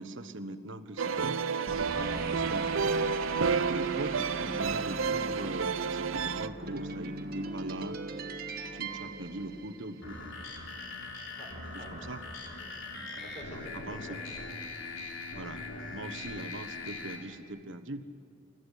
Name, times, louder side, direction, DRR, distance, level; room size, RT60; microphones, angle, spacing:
voice 1, 0.0-1.4 2.5-3.0 3.7-8.0 8.7-10.4 11.7-12.2 13.1-13.2 13.9-14.2 15.3-15.6 15.9-18.0, right 2 dB, 70° right, 8 dB, 1.2 m, -41 dB
sound 1, 1.0-6.5, right 5 dB, 85° right, 0.7 m, -30 dB
sound 2, 1.7-10.2, right 3 dB, 50° right, 1.4 m, -40 dB
voice 2, 1.9-2.3 7.4-7.5 8.7-8.8 11.4-12.0 12.6-12.8 13.2-15.1 16.0-16.1, equal, 35° left, 1 dB, 5.1 m, -48 dB
sound 3, 10.0-17.2, left 3 dB, 70° left, 3.7 m, -41 dB
29.0 x 14.0 x 8.5 m, 2.5 s
head